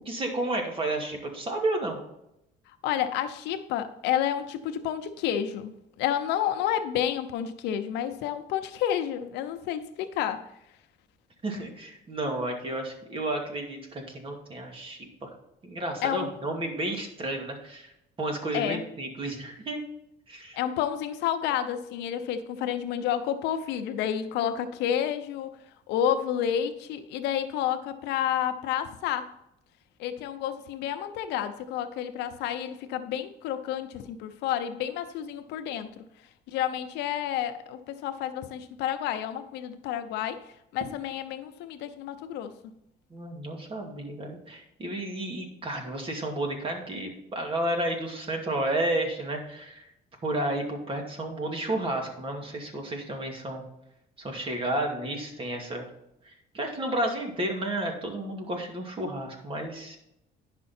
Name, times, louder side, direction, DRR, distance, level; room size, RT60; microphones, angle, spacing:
voice 1, 0.1-2.0 11.4-15.3 15.6-17.9 18.2-19.8 20.3-20.6 43.1-49.8 50.2-53.6 54.2-55.9 56.2-60.0, right 1 dB, 30° right, 2 dB, 2.3 m, -32 dB
voice 2, 2.8-10.5 16.0-16.3 18.5-18.8 20.5-25.6 25.9-29.3 30.0-36.0 36.5-42.7, left 10 dB, 90° left, 9 dB, 0.8 m, -30 dB
10.5 x 6.1 x 4.3 m, 0.82 s
cardioid pair, 110°, 17 cm